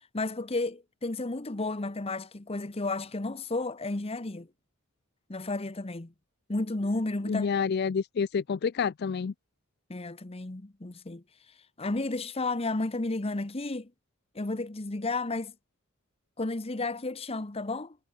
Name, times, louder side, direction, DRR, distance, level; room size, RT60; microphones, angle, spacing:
voice 1, 0.1-4.5 5.3-6.1 6.5-7.6 9.9-11.2 11.8-13.9 14.3-15.5 16.4-18.0, left 2 dB, 30° left, 1.0 m, -32 dB
voice 2, 7.3-9.3, left 6 dB, 50° left, 0.4 m, -28 dB
head